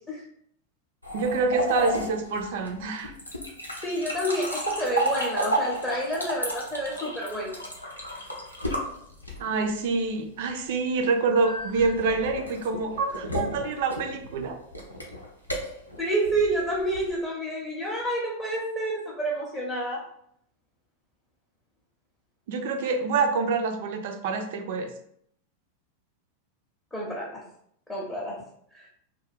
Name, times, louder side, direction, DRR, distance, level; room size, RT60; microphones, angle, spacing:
sound 1, 1.0-9.7 11.4-17.1, equal, 85° left, 0.5 m, -32 dB
voice 1, 1.1-3.1 9.4-14.6 22.5-24.9, right 4 dB, 55° right, 5 dB, 0.4 m, -26 dB
voice 2, 3.8-7.6 16.0-20.1 26.9-27.5 27.9-28.4 28.7-28.8, right 1 dB, 10° left, -4 dB, 0.6 m, -29 dB
2.3 x 2.2 x 3.4 m, 0.70 s
figure-of-eight pair, 90°, 0 cm